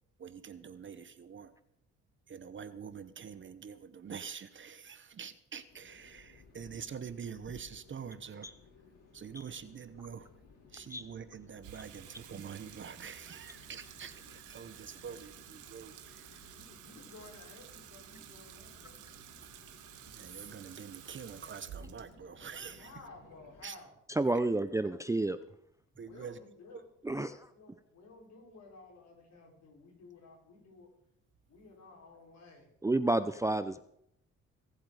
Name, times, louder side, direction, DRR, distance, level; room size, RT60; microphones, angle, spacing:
voice 1, 0.2-1.5 2.3-8.5 9.1-10.3 10.7-16.4 20.1-22.9 23.6-23.8 24.3-24.5 26.0-26.4 26.7-26.8, right 7 dB, 40° right, 14 dB, 0.9 m, -46 dB
sound 1, 5.7-23.7, left 4 dB, 85° left, 4.2 m, -59 dB
Water tap faucet / Sink (filling or washing), 11.6-24.0, right 10 dB, 85° right, 1.4 m, -53 dB
voice 2, 16.5-19.0 22.8-23.9 24.7-24.8 26.0-26.8 27.1-30.9 31.5-32.7, left 3 dB, 60° left, 0 dB, 5.3 m, -54 dB
voice 3, 24.1-25.4 27.0-27.3 32.8-33.8, right 2 dB, 10° right, 12 dB, 0.5 m, -30 dB
23.5 x 8.0 x 4.9 m, 0.75 s
cardioid pair, 90°, 30 cm